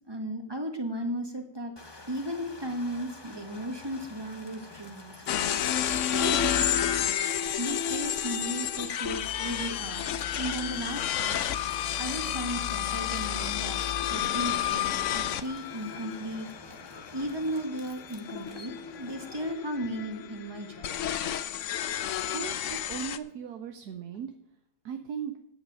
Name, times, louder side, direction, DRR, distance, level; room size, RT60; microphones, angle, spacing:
voice 1, 0.1-1.7 2.1-5.1 6.1-7.0 7.6-11.4 12.0-16.5 17.1-21.0, right 1 dB, 15° right, 4 dB, 1.5 m, -35 dB
tractor-ladnfill-crush, 1.8-19.5, left 2 dB, 20° left, 0.8 m, -49 dB
sound 1, 5.3-23.2, left 10 dB, 70° left, 0.7 m, -31 dB
voice 2, 22.3-24.3 24.8-25.3, right 7 dB, 65° right, 6 dB, 1.4 m, -37 dB
9.6 x 8.2 x 6.4 m, 0.77 s
omnidirectional pair, 1.9 m